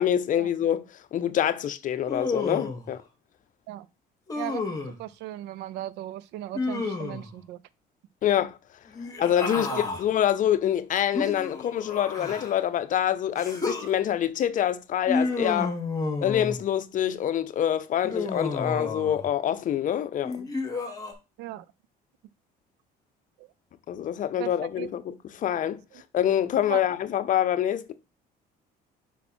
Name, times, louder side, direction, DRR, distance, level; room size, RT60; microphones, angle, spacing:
voice 1, 0.0-3.0 8.2-8.6 9.2-9.7 10.0-15.7 16.2-20.4 23.9-25.8 26.1-27.9, left 10 dB, 50° left, 0.6 m, -26 dB
Human voice, 2.1-2.9 4.3-5.0 6.5-7.3 8.9-10.0 11.1-12.6 13.4-13.9 15.1-16.6 18.0-19.2 20.2-21.1, left 3 dB, 20° left, 1.9 m, -31 dB
voice 2, 4.4-7.6 9.5-9.8 21.4-21.7 23.4-23.5 24.4-24.9 26.5-26.8, right 13 dB, 85° right, 0.5 m, -37 dB
5.8 x 4.1 x 4.3 m
cardioid pair, 110°, 17 cm